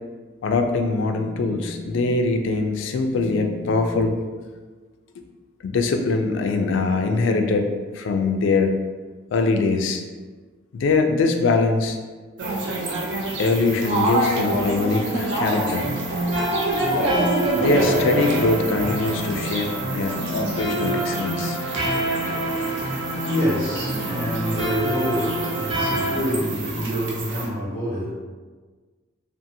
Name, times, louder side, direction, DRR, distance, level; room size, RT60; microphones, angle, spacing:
voice 1, 0.4-4.2 5.2-5.3 5.6-8.7 9.3-10.0 10.7-12.0 13.4-16.1 17.5-21.6, left 3 dB, 75° left, 5 dB, 0.3 m, -22 dB
sound 1, 12.4-27.5, right 2 dB, 65° right, 0.5 m, -28 dB
sound 2, 15.5-26.2, right 1 dB, 25° right, 0.9 m, -27 dB
voice 2, 22.2-28.1, equal, 85° right, -9 dB, 1.4 m, -27 dB
2.6 x 2.4 x 2.6 m, 1.4 s
head